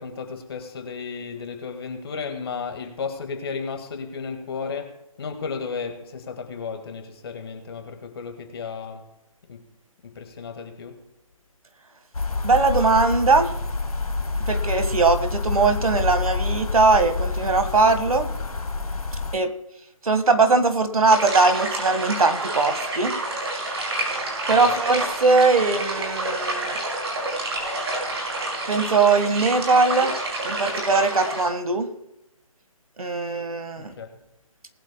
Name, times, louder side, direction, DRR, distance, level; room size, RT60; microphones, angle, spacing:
voice 1, 0.0-9.1 9.5-9.6 10.0-11.1 24.6-24.8 33.8-34.1, left 5 dB, 45° left, 2.0 m, -34 dB
sound 1, 12.1-19.4, left 3 dB, 90° left, 1.3 m, -27 dB
voice 2, 12.4-13.5 14.5-18.3 19.3-19.5 20.0-23.1 24.5-26.8 28.7-30.1 30.4-31.9 33.0-33.9, right 3 dB, 75° right, 1.8 m, -20 dB
sound 2, 21.1-31.4, right 2 dB, 50° right, 5.3 m, -28 dB
20.0 x 11.5 x 2.3 m
figure-of-eight pair, 155°, 18 cm